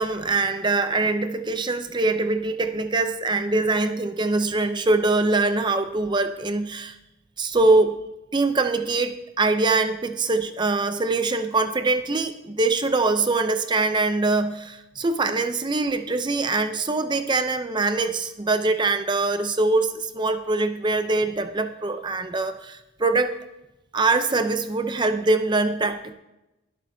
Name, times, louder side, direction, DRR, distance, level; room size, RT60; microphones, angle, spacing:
voice 1, 0.0-7.0 7.4-8.0 8.3-23.4 23.9-26.1, right 3 dB, 20° right, 9 dB, 0.5 m, -23 dB
22.0 x 7.6 x 2.7 m, 0.94 s
head